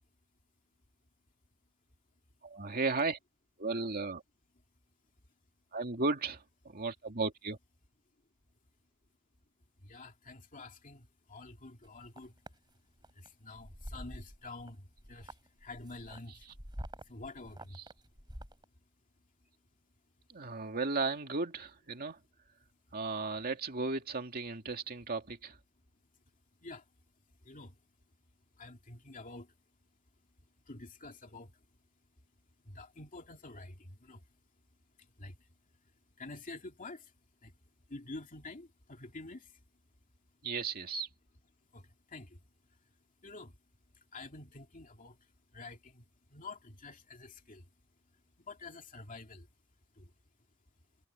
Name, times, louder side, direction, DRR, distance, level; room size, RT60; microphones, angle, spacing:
voice 1, 2.4-3.2 3.6-4.2 5.7-7.6 20.3-22.2 22.9-25.6 40.4-41.1, right 3 dB, 45° right, 2.4 m, -35 dB
voice 2, 9.8-12.3 13.1-16.5 17.1-17.8 26.6-26.8 27.4-27.8 28.6-29.5 30.7-31.5 32.6-34.2 35.0-35.5 36.2-37.1 37.4-37.5 37.9-39.6 41.7-42.4 43.2-43.6 44.1-45.2 45.5-46.0 46.3-47.6 48.4-49.5 49.9-50.1, left 2 dB, 35° left, 2.6 m, -48 dB
sound 1, 11.8-12.6 13.0-13.3 13.6-14.7 15.0-18.6, equal, 20° right, 7.2 m, -47 dB
head